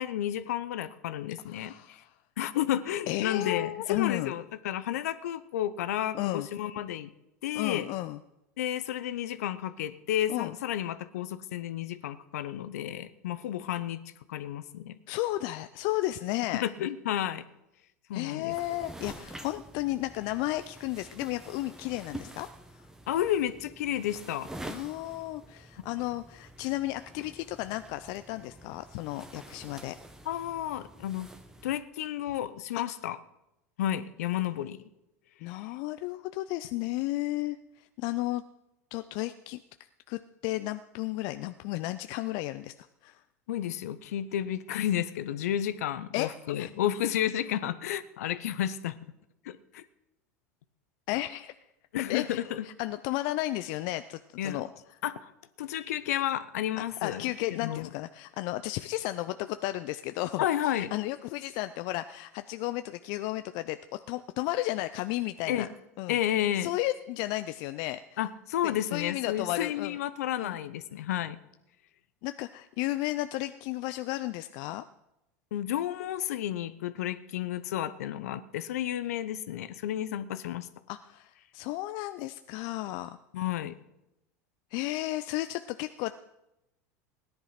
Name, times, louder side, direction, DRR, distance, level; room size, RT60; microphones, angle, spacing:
voice 1, 0.0-1.7 2.4-7.1 7.4-7.9 8.6-14.0 14.3-15.0 16.6-17.4 18.1-18.5 23.1-24.5 30.3-31.3 31.6-33.2 33.8-34.8 43.5-49.0 49.4-49.8 51.9-52.6 54.4-54.6 55.0-55.3 55.6-57.3 57.5-57.9 60.4-60.9 65.5-65.7 66.1-66.7 68.2-71.4 75.5-80.7 83.3-83.7, left 11 dB, 75° left, 14 dB, 0.9 m, -31 dB
voice 2, 1.5-2.1 3.1-4.3 6.1-6.5 7.5-8.2 10.3-10.5 15.1-16.6 18.1-22.5 24.7-30.0 32.7-32.8 35.4-38.4 38.9-39.6 40.1-42.7 43.0-43.2 46.1-46.3 46.6-46.7 51.1-51.5 52.1-54.7 56.8-65.7 66.0-66.2 66.6-68.2 68.6-70.0 70.4-70.5 72.2-74.9 80.9-83.2 84.7-86.1, left 17 dB, 55° left, 11 dB, 0.5 m, -33 dB
sound 1, 18.5-31.8, right 1 dB, 5° right, 1.5 m, -47 dB
17.0 x 10.5 x 5.8 m, 0.90 s
hypercardioid pair, 85°, 8 cm